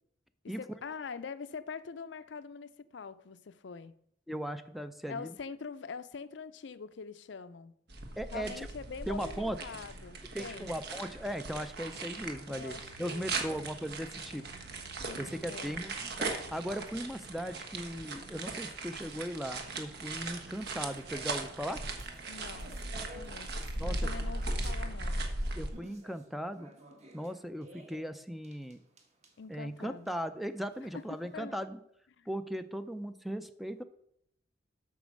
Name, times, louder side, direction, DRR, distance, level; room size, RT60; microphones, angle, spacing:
voice 1, 0.4-3.9 5.1-7.7 8.3-10.8 12.5-13.6 15.0-15.9 22.3-25.2 29.4-30.2 30.9-31.6 32.2-32.3, left 5 dB, 65° left, 0.5 m, -44 dB
voice 2, 4.3-5.3 8.2-8.7 9.1-9.6 10.3-14.4 15.2-16.1 16.5-21.8 23.8-24.0 25.6-26.7 27.1-28.8 29.5-31.8 32.3-33.8, equal, ahead, 0.4 m, -38 dB
sound 1, 7.9-25.7, right 2 dB, 60° right, 1.3 m, -38 dB
sound 2, 20.4-31.4, right 1 dB, 35° right, 1.4 m, -55 dB
8.4 x 6.1 x 6.3 m
head